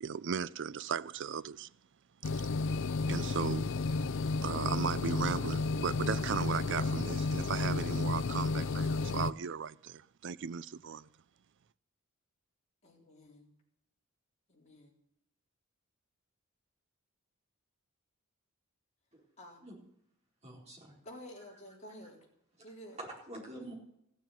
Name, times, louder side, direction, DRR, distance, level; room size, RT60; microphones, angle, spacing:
voice 1, 0.0-1.7 2.3-2.5 3.1-3.7 4.4-11.1, right 6 dB, 60° right, 0.4 m, -36 dB
sound 1, 2.2-9.3, left 3 dB, 60° left, 0.5 m, -32 dB
voice 2, 12.8-13.5 14.5-14.9 19.4-19.7 21.0-22.3 22.6-23.0, equal, 35° left, 3.9 m, -51 dB
voice 3, 20.4-21.0 23.0-23.7, right 1 dB, 30° right, 4.3 m, -46 dB
15.0 x 7.2 x 9.1 m
head